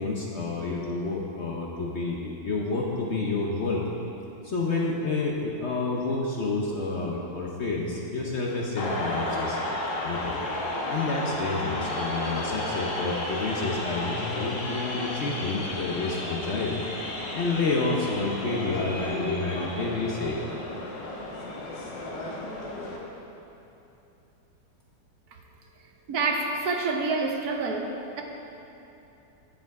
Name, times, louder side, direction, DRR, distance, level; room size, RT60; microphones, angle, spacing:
voice 1, 0.0-3.8 4.4-9.6 10.0-10.3 10.9-16.7 17.3-20.4, left 3 dB, 50° left, -2 dB, 0.9 m, -29 dB
sound 1, 8.8-23.0, left 1 dB, 85° left, 1.9 m, -33 dB
voice 2, 26.1-28.2, right 3 dB, 65° right, 2 dB, 1.2 m, -27 dB
10.5 x 7.8 x 4.7 m, 2.9 s
omnidirectional pair, 1.9 m